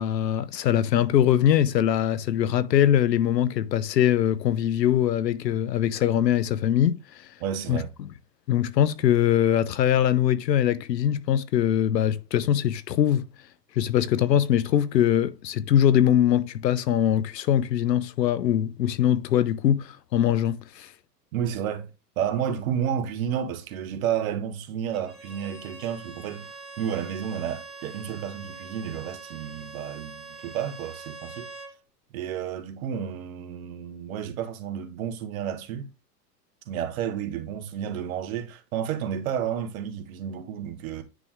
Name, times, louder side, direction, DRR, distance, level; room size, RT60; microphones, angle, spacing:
voice 1, 0.0-7.0 7.7-7.8 8.5-13.3 13.7-20.9, left 10 dB, 85° left, 0.9 m, -22 dB
voice 2, 7.4-7.9 21.3-21.9 22.2-26.5 26.8-31.5 32.1-35.9 36.7-41.0, right 9 dB, 55° right, 1.4 m, -31 dB
Bowed string instrument, 24.9-31.8, right 3 dB, ahead, 2.1 m, -43 dB
9.7 x 3.6 x 3.1 m
hypercardioid pair, 125°, 49 cm